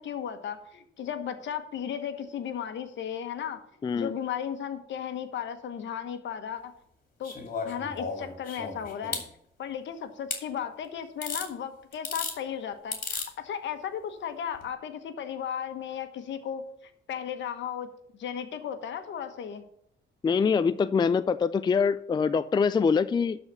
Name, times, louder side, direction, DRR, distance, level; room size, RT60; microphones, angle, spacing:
voice 1, 0.0-3.6 3.9-6.7 7.2-7.3 7.6-9.2 9.6-16.6 17.1-17.9 18.2-19.6, left 8 dB, 70° left, 8 dB, 1.3 m, -35 dB
voice 2, 3.8-4.1 20.2-23.4, left 5 dB, 20° left, 13 dB, 0.3 m, -24 dB
sound 1, 7.2-9.3 10.3-10.4 11.2-11.5 11.9-12.4 12.9-13.3 14.5-14.6, left 4 dB, 45° left, 2.5 m, -34 dB
12.0 x 4.2 x 6.7 m, 0.72 s
cardioid pair, 90°, 20 cm